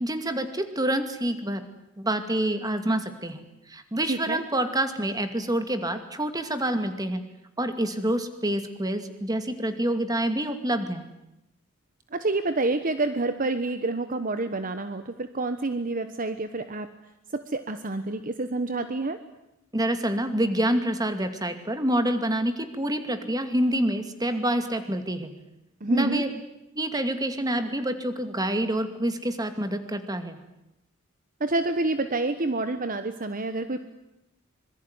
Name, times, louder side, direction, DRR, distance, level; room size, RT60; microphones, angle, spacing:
voice 1, 0.0-1.6 2.0-3.4 3.7-7.2 7.6-11.1 19.7-25.3 25.9-26.4 26.8-30.4, right 1 dB, 20° right, 8 dB, 2.4 m, -27 dB
voice 2, 4.1-4.4 12.1-16.9 17.3-19.2 25.8-26.2 31.4-33.8, right 2 dB, 45° right, 10 dB, 1.2 m, -28 dB
26.0 x 22.0 x 9.7 m, 0.90 s
head